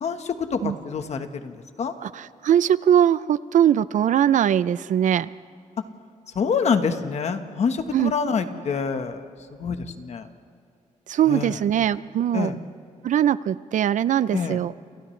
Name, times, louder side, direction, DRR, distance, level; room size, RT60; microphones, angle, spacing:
voice 1, 0.0-1.9 6.3-9.2 9.6-10.3 11.3-11.6 12.3-12.6 14.3-14.6, left 5 dB, 55° left, 7 dB, 1.3 m, -26 dB
voice 2, 2.0-5.3 7.9-8.1 11.1-12.5 13.0-14.7, right 10 dB, 70° right, 17 dB, 0.5 m, -21 dB
29.0 x 29.0 x 3.3 m, 2.4 s
wide cardioid pair, 180°, 13 cm